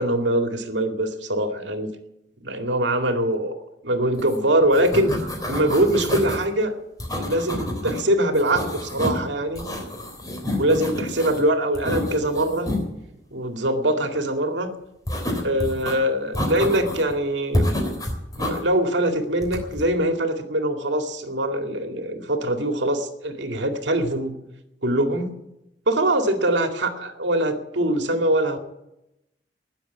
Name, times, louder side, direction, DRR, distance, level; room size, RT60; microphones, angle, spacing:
voice 1, 0.0-1.9 2.4-3.6 3.8-5.2 5.5-6.7 7.2-9.7 10.4-12.7 13.3-14.8 15.4-17.7 18.3-24.4 24.8-25.4 25.9-28.6, right 1 dB, 85° right, 5 dB, 2.2 m, -23 dB
sound 1, 4.2-4.4 4.6-6.4 7.0-8.0 8.3-9.2 9.5-11.4 11.7-12.8 15.1-15.9 16.3-17.1 17.5-18.6 19.4-19.8, left 1 dB, 20° left, 3.3 m, -28 dB
19.5 x 7.4 x 9.3 m, 0.88 s
head